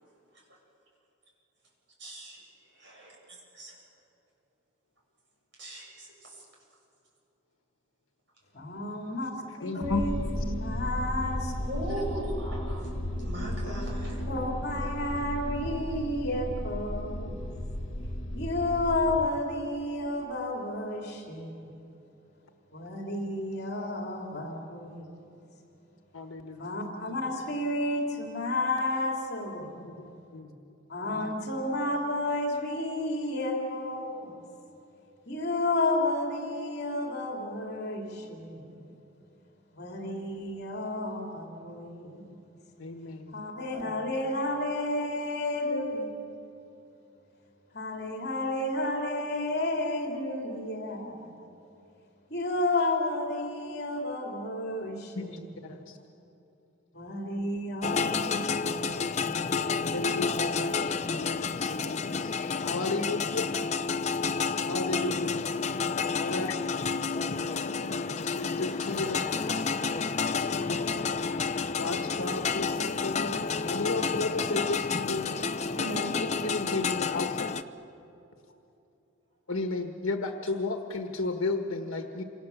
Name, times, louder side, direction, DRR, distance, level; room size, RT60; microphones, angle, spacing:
voice 1, 2.0-2.4 2.7-2.8 3.5-3.8 5.6-6.4 11.6-12.9 13.2-14.3 75.8-76.2, right 1 dB, 60° right, -2 dB, 8.0 m, -37 dB
voice 2, 8.5-11.5 14.2-17.4 18.3-21.7 22.7-25.1 26.6-29.9 30.9-34.3 35.2-38.9 39.7-42.4 43.3-46.2 47.7-51.3 52.3-55.5 55.8-55.9 56.9-58.9 59.2-60.0, left 2 dB, 50° left, 0 dB, 3.2 m, -32 dB
voice 3, 9.6-10.0 26.1-26.6 29.8-30.5 42.8-43.4 55.1-55.3 55.6-56.0 58.9-59.1 59.9-62.3 62.6-63.5 64.7-65.4 66.1-66.6 68.2-69.4 70.4-70.8 71.7-75.3 76.4-77.5 79.5-82.2, left 3 dB, 85° left, 4 dB, 1.4 m, -34 dB
sound 1, 9.8-19.3, left 1 dB, 65° left, 2.1 m, -34 dB
sound 2, 57.8-77.6, left 5 dB, 35° left, 0.7 m, -30 dB
28.5 x 26.0 x 7.2 m, 2.8 s
head